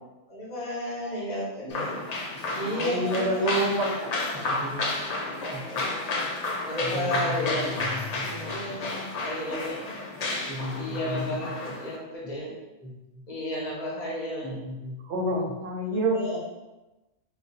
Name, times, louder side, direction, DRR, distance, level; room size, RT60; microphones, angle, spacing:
voice 1, 0.3-2.0 2.5-3.8 5.1-6.0 6.6-7.7 8.4-9.9 10.8-12.5 13.3-14.6 15.9-16.4, left 1 dB, 35° left, -5 dB, 0.8 m, -33 dB
sound 1, 1.7-12.0, left 2 dB, 65° left, 0.4 m, -32 dB
voice 2, 2.5-4.5 8.2-8.6 9.4-9.6 10.3-10.4 15.1-16.4, right 1 dB, 70° right, 0 dB, 0.9 m, -29 dB
voice 3, 4.3-5.8 6.8-8.3 8.8-8.9 10.5-11.5 12.2-12.3 12.8-13.2 14.4-15.0, equal, 10° right, -8 dB, 0.7 m, -37 dB
sound 2, 7.6-9.0, left 6 dB, 85° left, 1.0 m, -42 dB
2.4 x 2.2 x 4.0 m, 1.1 s
omnidirectional pair, 1.2 m